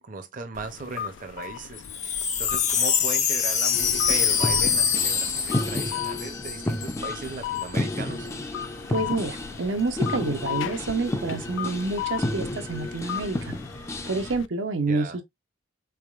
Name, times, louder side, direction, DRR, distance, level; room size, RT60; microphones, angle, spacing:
voice 1, 0.0-8.3 14.9-15.2, right 3 dB, 45° right, 0.6 m, -38 dB
sound 1, 0.5-14.5, left 10 dB, 80° left, 0.3 m, -37 dB
Wind chime, 1.8-7.0 7.2-7.3 7.6-8.0, left 7 dB, 40° left, 0.8 m, -25 dB
sound 2, 3.7-14.3, left 1 dB, 15° left, 0.4 m, -32 dB
voice 2, 8.9-13.5 14.1-15.2, right 3 dB, 85° right, 0.7 m, -28 dB
3.8 x 3.4 x 2.3 m
head